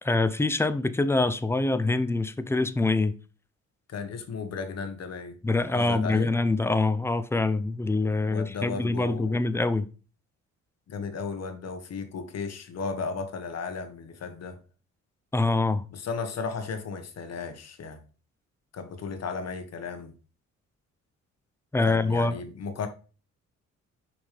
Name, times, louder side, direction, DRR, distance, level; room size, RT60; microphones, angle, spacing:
voice 1, 0.0-3.1 5.4-9.9 15.3-15.8 21.7-22.4, left 3 dB, 10° left, 0.7 m, -25 dB
voice 2, 3.9-5.4 5.7-6.3 8.3-9.4 10.9-14.6 15.9-18.0 18.7-20.1 21.8-22.9, left 5 dB, 55° left, 1.5 m, -35 dB
6.0 x 5.5 x 3.3 m
cardioid pair, 90°, 30 cm